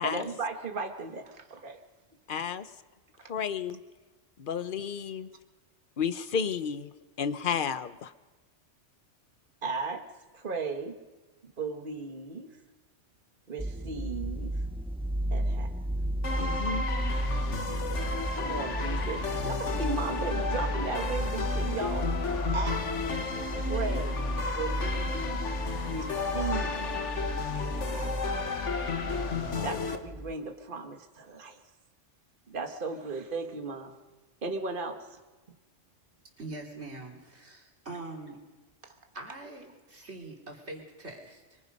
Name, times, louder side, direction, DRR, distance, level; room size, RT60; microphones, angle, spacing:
voice 1, 0.0-1.8 9.6-10.1 10.3-11.0 11.4-12.6 13.5-14.6 15.3-15.9 17.7-17.9 18.3-22.1 22.5-22.9 23.5-24.2 24.6-25.4 25.9-27.0 27.5-28.3 29.6-31.6 32.5-33.9 34.4-35.2 38.8-39.0, right 4 dB, 45° right, 4 dB, 1.7 m, -36 dB
voice 2, 2.3-2.7 3.3-3.8 4.4-5.3 6.0-6.9 7.2-8.1 16.4-16.8, left 7 dB, 50° left, 13 dB, 1.0 m, -31 dB
sound 1, 13.6-30.3, equal, 5° right, 0.5 m, -33 dB
sound 2, 16.2-30.0, left 4 dB, 80° left, 1.8 m, -33 dB
voice 3, 36.4-38.4 39.1-41.6, right 2 dB, 65° right, 0 dB, 3.7 m, -43 dB
30.0 x 23.5 x 5.5 m, 1.3 s
omnidirectional pair, 1.2 m